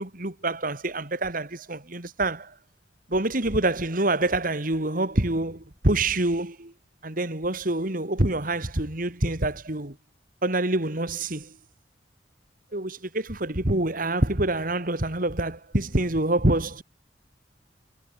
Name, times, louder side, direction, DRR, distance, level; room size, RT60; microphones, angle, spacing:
voice 1, 0.0-2.5 3.1-6.7 7.0-9.9 10.4-11.5 12.7-16.8, right 2 dB, 50° right, 3.0 m, -26 dB
head